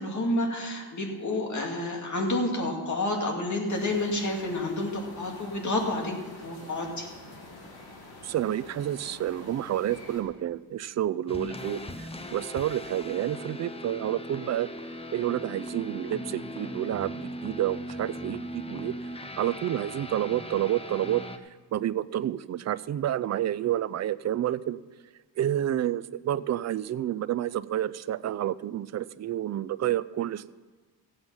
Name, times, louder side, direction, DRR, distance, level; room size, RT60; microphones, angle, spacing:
voice 1, 0.0-6.1 6.4-7.1, left 1 dB, 40° left, 1 dB, 2.5 m, -29 dB
sound 1, 3.7-10.2, left 2 dB, 55° left, 2.8 m, -46 dB
voice 2, 8.2-14.7 15.1-18.9 19.4-21.2 21.7-24.8 25.4-30.5, right 12 dB, 40° right, 16 dB, 0.4 m, -29 dB
sound 2, 11.3-21.4, left 1 dB, 15° left, 0.7 m, -39 dB
15.5 x 8.0 x 5.6 m, 1.3 s
cardioid pair, 125°, 44 cm